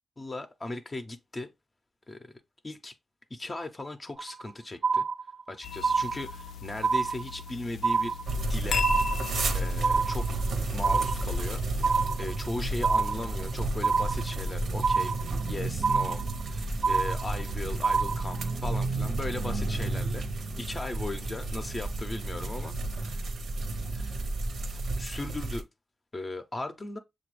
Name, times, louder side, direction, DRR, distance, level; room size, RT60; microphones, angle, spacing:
voice 1, 0.2-1.5 2.1-2.3 2.6-2.9 3.3-5.0 5.5-8.2 8.5-8.9 9.5-10.4 10.7-23.3 23.9-24.3 24.7-25.7 26.1-27.0, left 2 dB, 25° left, 0.5 m, -38 dB
sound 1, 4.2-4.5 4.8-5.5 5.8-6.5 6.8-7.5 7.8-8.5 8.8-9.5 9.8-10.5 10.8-11.5 11.8-12.5 12.8-13.5 13.8-14.5 14.8-15.5 15.8-16.5 16.8-17.5 17.8-18.5, right 5 dB, 50° right, 0.4 m, -27 dB
sound 2, 5.6-12.1, left 6 dB, 80° left, 0.4 m, -38 dB
sound 3, 8.3-25.6, right 2 dB, 75° right, 0.7 m, -31 dB
6.6 x 2.2 x 3.0 m
wide cardioid pair, 110°, 0 cm